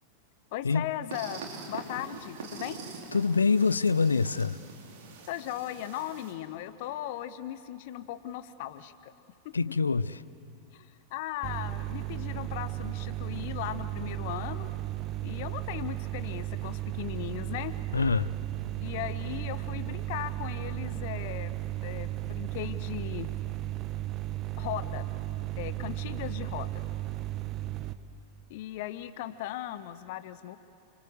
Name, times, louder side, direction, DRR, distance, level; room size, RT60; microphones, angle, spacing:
voice 1, 0.5-1.4 1.7-2.8 5.3-9.1 9.4-9.5 10.7-14.7 15.2-17.7 18.8-23.3 24.6-25.1 25.6-26.9 28.5-30.6, left 13 dB, 50° left, 13 dB, 1.1 m, -38 dB
sound 1, 1.1-6.3, right 4 dB, 55° right, 5.0 m, -44 dB
voice 2, 3.1-4.6 9.5-10.2 17.9-18.3, left 4 dB, 75° left, 17 dB, 0.7 m, -25 dB
sound 2, 11.4-27.9, right 15 dB, 35° right, 1.2 m, -35 dB
30.0 x 24.0 x 8.1 m, 2.5 s
figure-of-eight pair, 90°, 0 cm